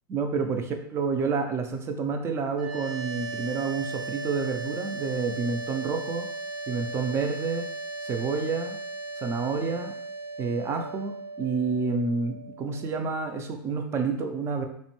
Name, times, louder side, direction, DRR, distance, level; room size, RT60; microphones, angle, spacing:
voice 1, 0.1-0.6 0.9-6.3 6.7-7.7 8.0-8.8 9.2-9.9 10.4-14.6, right 4 dB, 20° right, 4 dB, 0.3 m, -29 dB
sound 1, 2.5-13.6, right 3 dB, 85° right, 0.9 m, -37 dB
2.5 x 2.1 x 2.9 m, 0.66 s
hypercardioid pair, 115°, 12 cm